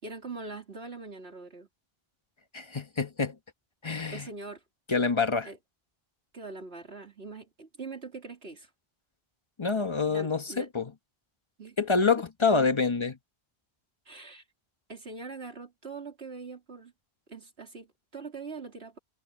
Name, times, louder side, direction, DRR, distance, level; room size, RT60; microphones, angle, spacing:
voice 1, 0.0-1.7 4.1-4.6 5.5-5.6 6.3-8.7 10.1-10.7 11.6-11.8 14.1-14.4 14.9-16.9 17.3-19.0, right 4 dB, 90° right, 3.7 m, -42 dB
voice 2, 2.5-3.3 3.8-4.3 4.9-5.5 9.6-10.9 11.8-13.2, left 4 dB, 30° left, 1.2 m, -26 dB
omnidirectional pair, 1.0 m